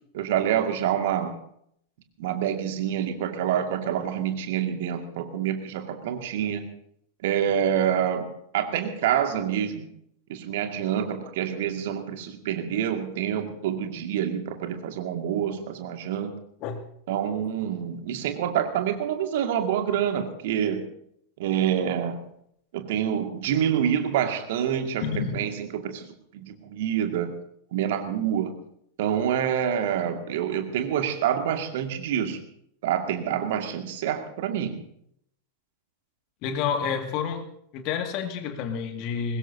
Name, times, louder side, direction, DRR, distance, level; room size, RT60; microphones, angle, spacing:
voice 1, 0.1-1.3 2.2-6.7 7.2-9.9 10.3-16.3 17.1-20.9 21.4-22.2 22.7-26.1 26.3-27.3 27.7-28.6 29.0-32.4 32.8-34.8, right 9 dB, 55° right, 2.1 m, -27 dB
voice 2, 25.0-25.4 36.4-37.5 37.7-39.4, left 6 dB, 40° left, 2.1 m, -29 dB
22.0 x 20.0 x 2.8 m
figure-of-eight pair, 90°, 0 cm